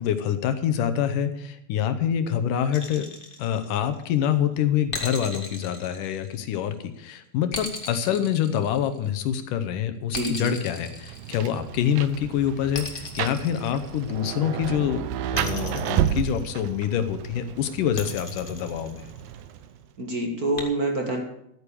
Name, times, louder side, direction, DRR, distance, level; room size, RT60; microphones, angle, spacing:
voice 1, 0.0-3.1 3.4-15.1 15.3-19.1, left 9 dB, 70° left, 10 dB, 2.2 m, -26 dB
sound 1, 2.7-4.1 4.9-6.7 7.5-9.3 10.1-11.8 12.7-14.4 15.3-16.9 17.9-19.5 20.6-20.7, left 2 dB, 25° left, 1.1 m, -37 dB
voice 2, 10.1-10.5 20.0-21.2, right 1 dB, 50° right, 3 dB, 1.1 m, -26 dB
Rain, 10.8-19.9, right 11 dB, 75° right, 2.3 m, -32 dB
13.0 x 9.4 x 6.8 m, 0.77 s
omnidirectional pair, 4.4 m